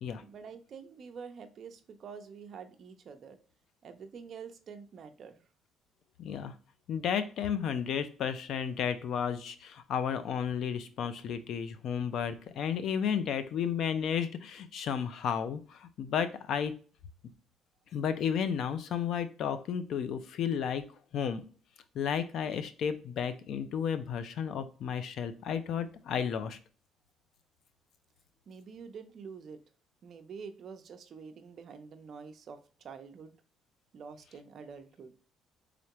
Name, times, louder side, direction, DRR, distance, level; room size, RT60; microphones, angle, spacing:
voice 1, 0.2-3.4 3.8-5.4 28.5-29.6 30.0-33.4 33.9-35.1, right 6 dB, 45° right, 7 dB, 0.6 m, -47 dB
voice 2, 6.2-6.5 6.9-16.7 17.9-20.8 21.1-21.4 21.9-26.6, left 7 dB, 60° left, 11 dB, 0.5 m, -33 dB
3.7 x 3.4 x 2.9 m, 0.40 s
cardioid pair, 125°, 0 cm